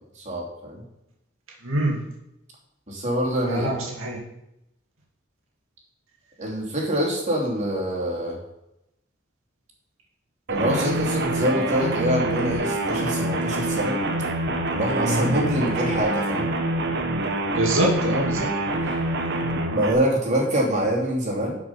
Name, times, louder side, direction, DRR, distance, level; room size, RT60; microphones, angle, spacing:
voice 1, 0.2-0.8 2.9-3.7 6.4-8.4 10.5-14.0 14.7-16.5 18.8-19.0 19.4-21.6, equal, 35° right, -2 dB, 3.0 m, -25 dB
voice 2, 1.6-2.0 3.5-4.2 15.0-15.4 17.5-18.5, right 1 dB, 85° right, -2 dB, 2.4 m, -24 dB
sound 1, 10.5-19.9, right 1 dB, 55° right, 1.2 m, -26 dB
11.5 x 6.0 x 5.7 m, 0.86 s
head